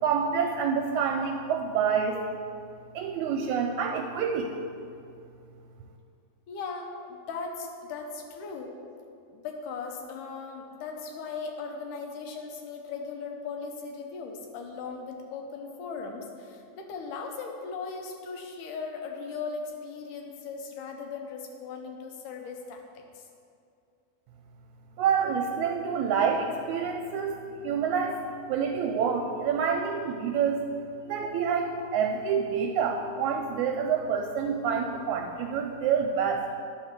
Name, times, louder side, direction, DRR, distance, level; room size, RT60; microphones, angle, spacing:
voice 1, 0.0-2.2 2.9-4.5 25.0-28.2 28.5-30.6 31.1-36.4, right 6 dB, 80° right, 2 dB, 1.8 m, -27 dB
voice 2, 6.5-8.8 9.3-23.2, left 4 dB, 85° left, 2 dB, 2.5 m, -38 dB
11.0 x 3.9 x 6.6 m, 2.5 s
omnidirectional pair, 3.6 m